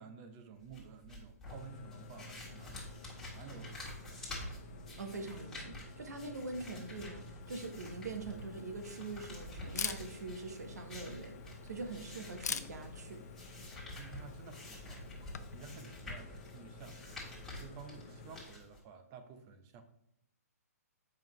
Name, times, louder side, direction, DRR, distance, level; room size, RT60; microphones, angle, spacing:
voice 1, 0.0-2.9 3.3-4.2 13.9-19.8, right 6 dB, 30° right, 8 dB, 0.7 m, -53 dB
sound 1, 0.6-18.8, left 2 dB, 5° left, 1.9 m, -49 dB
sound 2, 1.4-18.4, left 2 dB, 40° left, 0.9 m, -52 dB
voice 2, 5.0-13.2, right 3 dB, 80° right, 5 dB, 1.2 m, -43 dB
Camera, 7.4-15.7, left 6 dB, 80° left, 0.6 m, -46 dB
7.4 x 5.5 x 3.2 m, 0.76 s
hypercardioid pair, 145°, 9 cm